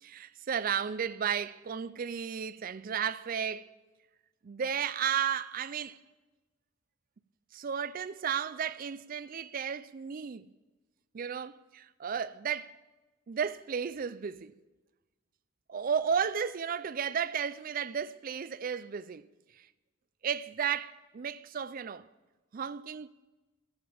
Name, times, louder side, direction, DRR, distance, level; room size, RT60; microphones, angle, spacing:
voice 1, 0.0-3.7 4.4-6.0 7.5-10.5 11.1-12.8 13.3-14.5 15.7-19.3 20.2-22.1 22.5-23.1, right 7 dB, 45° right, 0.4 m, -33 dB
15.0 x 11.5 x 6.9 m
head